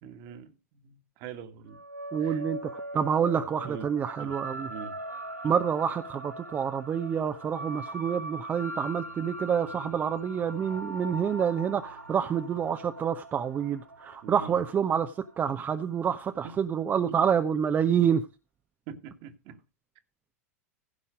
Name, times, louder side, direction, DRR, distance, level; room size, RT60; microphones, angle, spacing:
voice 1, 0.0-1.8 2.2-2.5 3.4-3.9 4.2-4.4 4.7-5.0 14.2-14.6 16.4-16.6 17.1-17.2 18.9-19.6, right 7 dB, 45° right, 1.8 m, -43 dB
sound 1, 1.7-16.4, right 2 dB, 85° right, 0.7 m, -41 dB
voice 2, 2.1-4.7 5.4-18.3, right 8 dB, 25° right, 0.8 m, -28 dB
16.0 x 5.5 x 5.0 m
figure-of-eight pair, 90°, 8 cm